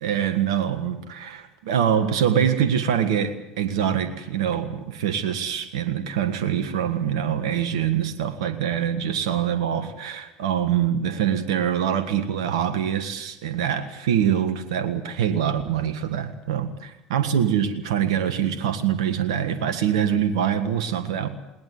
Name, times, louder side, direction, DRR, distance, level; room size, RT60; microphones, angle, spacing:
voice 1, 0.0-21.3, right 9 dB, 70° right, 10 dB, 1.6 m, -24 dB
20.5 x 19.0 x 9.4 m, 0.94 s
hypercardioid pair, 70°, 3 cm